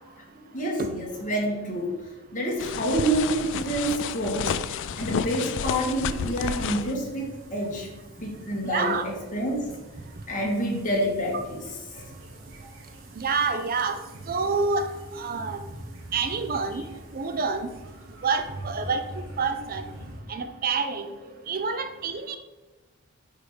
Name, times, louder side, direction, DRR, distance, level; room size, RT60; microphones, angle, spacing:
voice 1, 0.3-2.0 2.3-7.9 8.2-9.7 10.3-11.6 11.9-12.0 12.6-12.7, right 1 dB, 35° left, -1 dB, 1.8 m, -28 dB
sound 1, 2.6-6.9, left 7 dB, 55° left, 0.3 m, -31 dB
sound 2, 3.0-20.2, right 1 dB, 60° right, 1.3 m, -44 dB
voice 2, 8.6-9.1 13.2-14.0 14.3-14.9 15.1-15.6 16.1-16.8 17.1-17.7 18.2-19.0 19.4-19.8 20.3-21.1 21.5-22.4, right 4 dB, 40° right, 8 dB, 0.5 m, -27 dB
8.7 x 3.7 x 4.9 m, 1.2 s
head